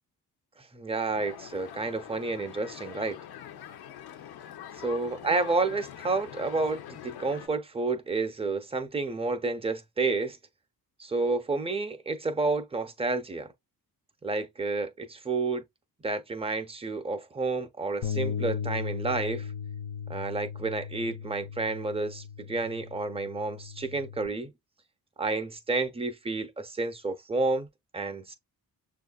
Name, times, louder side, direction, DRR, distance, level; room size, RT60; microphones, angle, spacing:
voice 1, 0.7-3.2 4.8-10.4 11.0-13.5 14.2-15.6 16.0-19.5 20.1-24.5 25.2-27.7 27.9-28.3, right 3 dB, 15° right, 0.4 m, -30 dB
sound 1, 1.1-7.5, left 10 dB, 85° left, 0.7 m, -44 dB
Bass guitar, 18.0-24.3, left 7 dB, 50° left, 0.5 m, -36 dB
6.6 x 2.4 x 2.3 m
wide cardioid pair, 165°, 37 cm